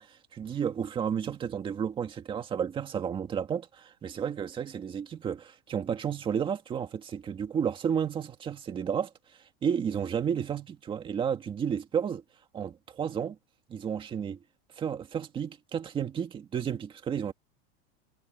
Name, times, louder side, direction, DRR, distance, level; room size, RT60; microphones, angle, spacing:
voice 1, 0.0-9.1 9.6-12.2 12.5-13.4 13.7-14.4 14.8-17.3, right 7 dB, 15° right, 2.0 m, -32 dB
supercardioid pair, 175°, 31 cm